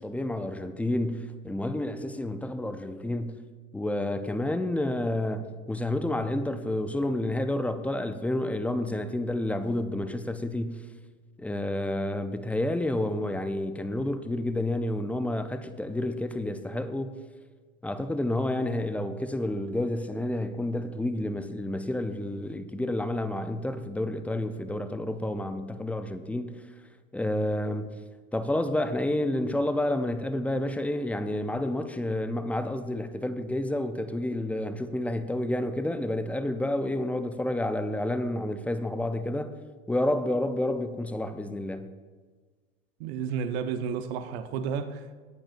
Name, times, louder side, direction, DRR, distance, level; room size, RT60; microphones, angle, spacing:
voice 1, 0.0-3.4 3.7-10.8 11.4-17.2 17.8-26.6 27.1-27.9 28.3-39.5 39.9-41.9, left 1 dB, 5° left, 0.5 m, -30 dB
voice 2, 43.0-45.1, right 7 dB, 55° right, 1.0 m, -32 dB
19.0 x 8.7 x 2.6 m
figure-of-eight pair, 80°, 39 cm